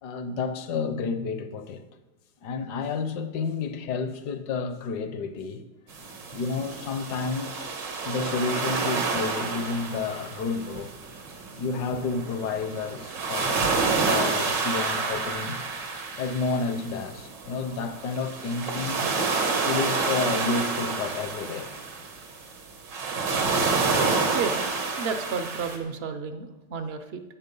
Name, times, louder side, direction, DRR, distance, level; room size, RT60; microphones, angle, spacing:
voice 1, 0.0-1.8 2.4-5.6 6.3-7.7 8.0-10.9 11.6-15.6 16.2-19.1 19.6-21.8, left 4 dB, 70° left, 1.4 m, -30 dB
sound 1, 5.9-25.8, right 4 dB, 85° right, 2.1 m, -29 dB
voice 2, 25.0-27.2, right 5 dB, 55° right, 0.7 m, -31 dB
13.5 x 7.8 x 5.3 m
omnidirectional pair, 1.9 m